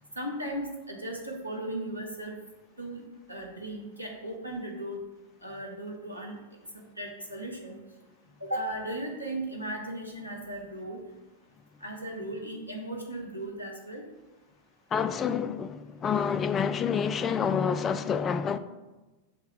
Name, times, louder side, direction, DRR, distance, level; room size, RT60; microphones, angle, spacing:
voice 1, 0.1-2.4 2.8-3.0 3.3-5.0 5.4-6.3 6.7-7.7 8.4-11.0 11.8-14.0, right 1 dB, 90° right, 1.0 m, -36 dB
voice 2, 14.9-18.6, left 7 dB, 25° left, 0.3 m, -28 dB
6.5 x 3.5 x 4.5 m
figure-of-eight pair, 90°, 0 cm